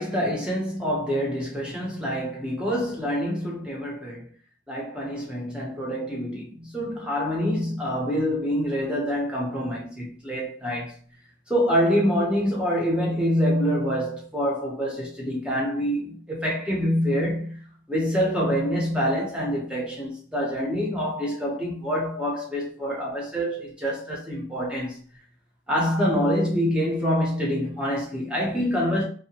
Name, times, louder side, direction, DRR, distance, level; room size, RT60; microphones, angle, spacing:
voice 1, 0.0-4.3 4.7-10.9 11.5-25.0 25.7-29.0, equal, 5° right, 0.7 m, -26 dB
2.7 x 2.0 x 2.8 m
head